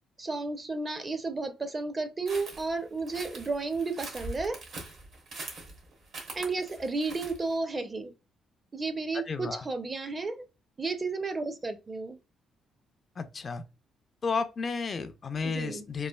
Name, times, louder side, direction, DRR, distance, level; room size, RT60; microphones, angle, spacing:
voice 1, 0.2-4.6 6.3-8.1 8.7-10.4 10.8-12.2 15.4-15.8, right 3 dB, 30° right, 0.5 m, -32 dB
sound 1, 2.3-7.5, right 2 dB, 70° right, 1.0 m, -43 dB
voice 2, 9.3-9.6 13.2-13.6 14.2-16.1, left 4 dB, 40° left, 0.3 m, -32 dB
3.1 x 2.4 x 2.2 m
cardioid pair, 90°, 0 cm